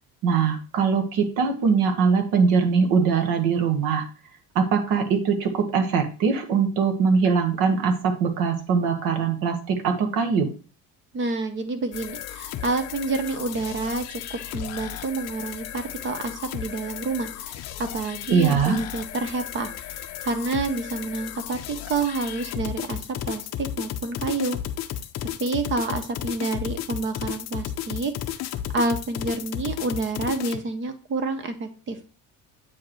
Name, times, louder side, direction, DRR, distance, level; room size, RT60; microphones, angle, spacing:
voice 1, 0.2-4.1 4.5-10.5 18.3-18.8, right 5 dB, 70° right, 6 dB, 1.4 m, -22 dB
voice 2, 11.1-24.6 25.4-28.1 28.7-32.1, right 3 dB, 30° right, 9 dB, 0.7 m, -29 dB
sound 1, 11.9-30.6, left 11 dB, 45° left, 0.5 m, -34 dB
8.1 x 5.1 x 3.0 m, 0.37 s
cardioid pair, 180°, 37 cm